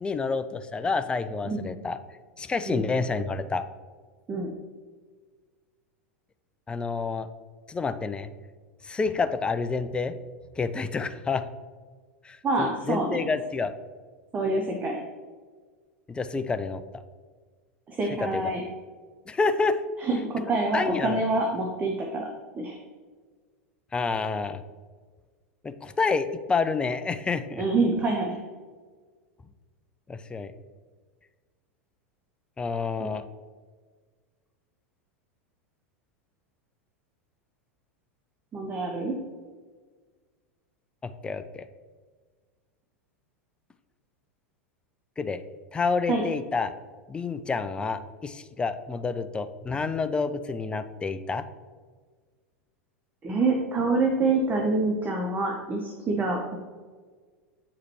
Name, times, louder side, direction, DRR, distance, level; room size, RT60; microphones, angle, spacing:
voice 1, 0.0-2.0 2.4-3.6 6.7-7.3 7.7-8.3 8.8-10.1 10.6-11.4 12.2-13.7 16.1-17.0 18.2-18.5 19.3-19.8 20.7-21.2 23.9-24.6 25.6-27.6 30.1-30.5 32.6-33.2 41.2-41.6 45.2-45.4 45.7-46.7 47.1-51.4, left 4 dB, 15° left, 10 dB, 0.4 m, -28 dB
voice 2, 12.4-13.2 14.3-15.0 17.9-18.6 20.0-22.3 22.5-22.8 27.6-28.4 33.0-33.1 38.5-39.2 46.1-46.2 53.2-56.6, right 3 dB, 25° right, 1 dB, 0.8 m, -26 dB
7.9 x 4.8 x 3.1 m, 1.5 s
figure-of-eight pair, 85°, 8 cm